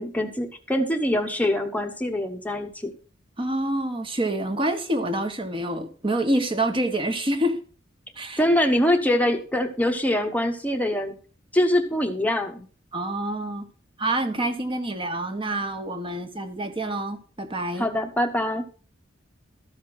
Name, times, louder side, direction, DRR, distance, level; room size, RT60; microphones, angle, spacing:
voice 1, 0.0-2.9 8.4-11.1 11.5-12.7 17.8-18.6, left 1 dB, 10° left, 1.1 m, -24 dB
voice 2, 3.4-7.6 8.2-8.4 12.9-13.7 14.0-17.9, right 1 dB, 30° right, 1.7 m, -27 dB
13.5 x 5.8 x 6.1 m
head